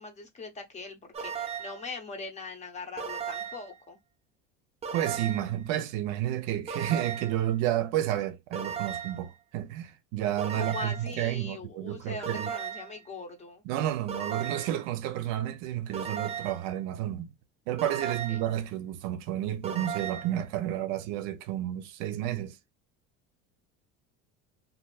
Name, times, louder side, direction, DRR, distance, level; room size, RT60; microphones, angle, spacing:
voice 1, 0.0-4.0 10.5-13.6 18.0-18.4, left 3 dB, 25° left, 0.8 m, -41 dB
sound 1, 1.1-1.9 3.0-3.7 4.8-5.6 6.7-7.4 8.5-9.3 10.4-11.1 12.2-13.0 14.1-14.8 15.9-16.7 17.8-18.5 19.6-20.4, right 7 dB, 20° right, 0.5 m, -36 dB
voice 2, 4.9-12.5 13.6-17.3 17.7-22.6, right 12 dB, 65° right, 0.6 m, -31 dB
2.7 x 2.6 x 2.2 m
cardioid pair, 135°, 29 cm